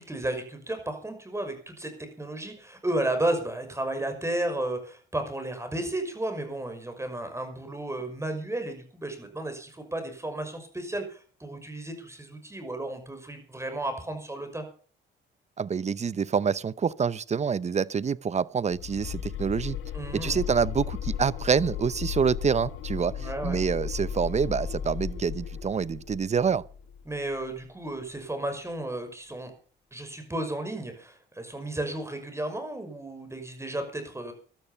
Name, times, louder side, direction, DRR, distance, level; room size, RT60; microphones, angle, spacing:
voice 1, 0.0-14.6 19.9-20.4 23.2-23.6 27.1-29.5 29.9-34.3, right 1 dB, 15° right, 5.9 m, -33 dB
voice 2, 15.6-19.8 20.1-26.6, right 6 dB, 35° right, 0.7 m, -27 dB
sound 1, 18.7-27.6, left 8 dB, 90° left, 2.0 m, -35 dB
16.0 x 12.5 x 5.8 m
cardioid pair, 90°, 20 cm